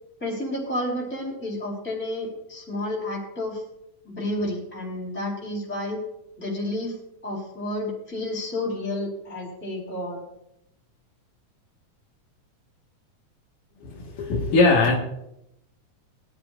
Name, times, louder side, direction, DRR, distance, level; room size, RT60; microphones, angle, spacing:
voice 1, 0.2-3.6 4.0-6.0 6.4-7.0 7.2-10.2, left 1 dB, 5° left, -5 dB, 4.0 m, -30 dB
voice 2, 13.8-15.0, left 3 dB, 85° left, -3 dB, 3.3 m, -20 dB
22.0 x 12.0 x 2.6 m, 0.82 s
omnidirectional pair, 3.6 m